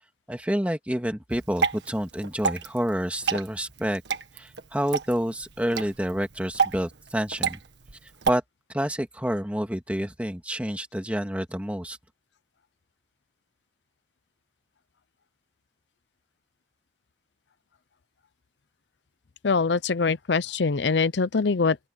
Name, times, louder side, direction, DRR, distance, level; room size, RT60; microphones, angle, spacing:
voice 1, 0.3-4.0 4.3-7.6 8.0-8.4 8.7-12.0, equal, 10° right, 1.9 m, -28 dB
Water / Drip, 1.3-8.3, right 5 dB, 80° right, 1.6 m, -30 dB
voice 2, 19.4-21.8, left 4 dB, 80° left, 0.6 m, -23 dB
open air
head